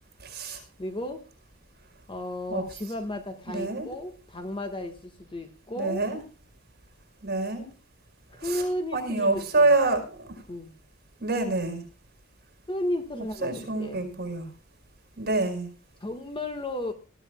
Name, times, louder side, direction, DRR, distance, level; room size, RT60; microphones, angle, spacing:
voice 1, 0.2-0.6 2.5-2.6 3.5-3.9 5.8-6.2 7.2-7.6 8.4-8.6 8.9-10.3 11.2-11.8 13.4-14.4 15.2-15.7, right 2 dB, 50° right, 4.9 m, -26 dB
voice 2, 0.8-1.3 2.1-6.0 8.3-9.7 10.5-10.7 12.7-14.0 16.0-16.9, left 1 dB, 25° left, 1.4 m, -33 dB
20.5 x 14.0 x 2.3 m
head